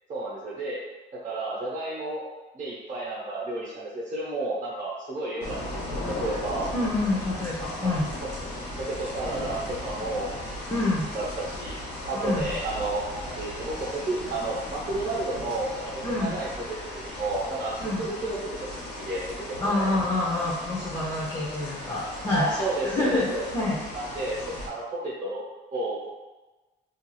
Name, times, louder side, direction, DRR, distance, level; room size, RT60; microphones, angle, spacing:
voice 1, 0.1-0.8 1.2-2.2 2.5-6.7 7.8-7.9 8.8-10.3 10.8-11.8 12.1-19.2 19.6-19.9 22.3-23.5 23.9-24.4 24.7-25.4 25.7-26.1, right 2 dB, 40° right, -7 dB, 0.8 m, -31 dB
sound 1, 5.4-24.7, left 1 dB, 80° left, 0.9 m, -37 dB
voice 2, 6.7-8.1 10.7-11.0 12.1-12.5 16.0-16.4 17.8-18.0 19.6-22.5 22.8-23.3 23.5-23.8, left 2 dB, 20° left, -7 dB, 0.6 m, -27 dB
2.4 x 2.3 x 3.1 m, 1.2 s
cardioid pair, 90°, 20 cm